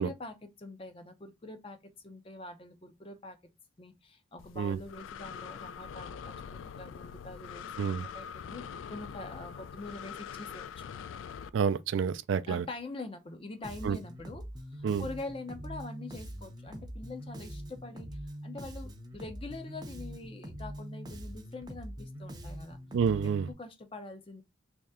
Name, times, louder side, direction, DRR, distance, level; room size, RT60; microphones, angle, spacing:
voice 1, 0.0-3.4 3.8-10.9 12.5-14.4 14.7-22.8 23.2-24.4, left 2 dB, 30° left, 0.5 m, -44 dB
Breathing, 4.4-11.5, left 7 dB, 85° left, 0.3 m, -44 dB
voice 2, 11.5-12.6 13.8-14.0 14.8-15.0 22.9-23.5, right 6 dB, 75° right, 0.3 m, -28 dB
Bass guitar, 13.6-23.5, equal, 20° right, 0.6 m, -43 dB
3.2 x 2.8 x 3.5 m
head